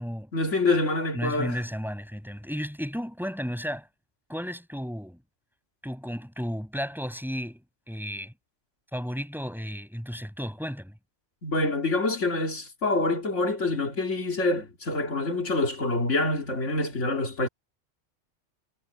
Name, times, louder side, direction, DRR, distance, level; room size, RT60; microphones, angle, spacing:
voice 1, 0.3-1.6 11.4-17.5, left 2 dB, 80° left, 2.8 m, -26 dB
voice 2, 1.1-3.9 4.3-5.2 5.8-8.3 8.9-10.9, equal, ahead, 6.4 m, -33 dB
omnidirectional pair, 1.2 m